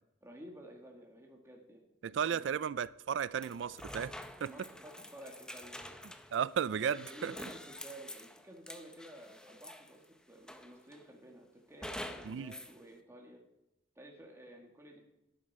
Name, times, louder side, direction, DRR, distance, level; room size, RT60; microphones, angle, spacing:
voice 1, 0.2-1.8 2.3-2.4 4.5-6.0 6.7-10.0 10.3-13.4 14.0-15.0, right 1 dB, 15° right, 2.1 m, -52 dB
voice 2, 2.0-4.1 4.4-4.5 6.3-7.3 12.2-12.5, right 7 dB, 75° right, 0.4 m, -34 dB
sound 1, 3.4-10.0 10.5-11.1 11.8-12.8, left 1 dB, 5° left, 0.7 m, -47 dB
10.5 x 9.9 x 4.3 m
head